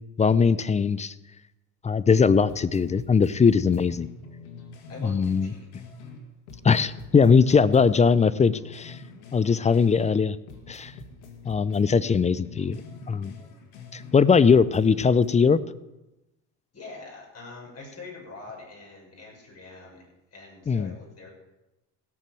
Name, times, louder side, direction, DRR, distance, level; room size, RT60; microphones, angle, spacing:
voice 1, 0.2-1.1 1.8-4.1 5.0-5.5 6.6-9.0 9.3-10.4 10.7-10.9 11.4-12.8 13.1-13.3 13.9-15.6 20.7-20.9, left 5 dB, 15° left, 17 dB, 0.4 m, -20 dB
sound 1, 2.2-2.3 2.5-6.2 6.5-10.2 10.5-14.2 14.5-15.3, left 4 dB, 90° left, 2.1 m, -45 dB
voice 2, 4.9-5.7 11.2-11.5 16.7-21.3, left 3 dB, 35° left, -1 dB, 6.6 m, -44 dB
17.0 x 6.7 x 7.6 m, 0.99 s
supercardioid pair, 90°, 41 cm